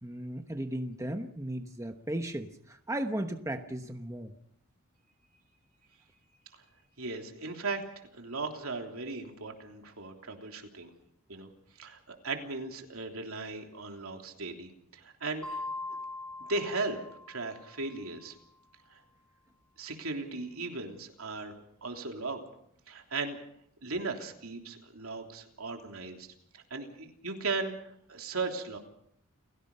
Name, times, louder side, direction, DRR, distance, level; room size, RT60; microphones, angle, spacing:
voice 1, 0.0-4.3, right 1 dB, 15° right, 6 dB, 1.1 m, -36 dB
voice 2, 7.0-10.9 11.3-11.5 11.8-15.6 16.5-17.0 17.3-18.3 18.9-19.0 19.8-21.5 21.8-22.4 22.9-23.4 23.8-26.3 26.5-28.8, right 3 dB, 70° right, 3 dB, 3.3 m, -37 dB
sound 1, 15.4-17.9, left 2 dB, 5° left, 6.3 m, -41 dB
29.5 x 16.5 x 5.5 m, 0.71 s
head